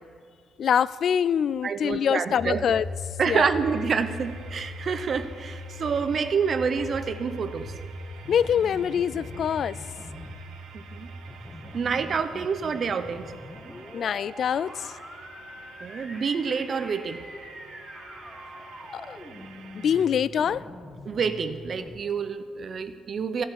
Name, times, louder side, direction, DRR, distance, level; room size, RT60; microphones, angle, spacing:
voice 1, 0.6-2.8 3.3-3.5 8.3-9.7 13.9-14.9 18.9-19.2 19.7-20.6, left 8 dB, 60° left, 19 dB, 0.3 m, -24 dB
voice 2, 1.6-2.6 3.2-7.7 10.7-11.1 11.7-13.2 15.8-17.2 21.0-23.4, right 5 dB, 50° right, 10 dB, 0.7 m, -27 dB
sound 1, 2.4-13.4, left 3 dB, 35° left, 2.8 m, -41 dB
sound 2, 3.6-20.1, right 6 dB, 85° right, 1.3 m, -49 dB
sound 3, 7.6-22.0, left 1 dB, 10° left, 1.7 m, -44 dB
13.5 x 8.3 x 8.0 m, 2.1 s
cardioid pair, 90°, 0 cm